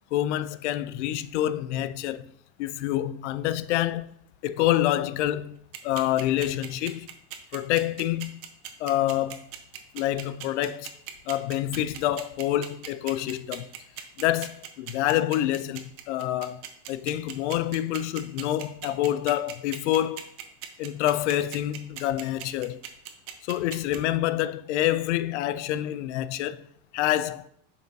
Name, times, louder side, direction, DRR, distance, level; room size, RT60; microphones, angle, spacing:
voice 1, 0.1-2.3 2.6-4.1 4.4-7.1 7.5-8.4 8.8-9.5 9.9-10.9 11.3-13.7 14.2-16.6 16.9-20.3 20.8-22.8 23.4-26.6 26.9-27.5, left 13 dB, 85° left, 0.5 m, -27 dB
sound 1, 5.7-24.0, right 12 dB, 50° right, 1.0 m, -38 dB
9.0 x 5.6 x 2.7 m
supercardioid pair, 150°, 34 cm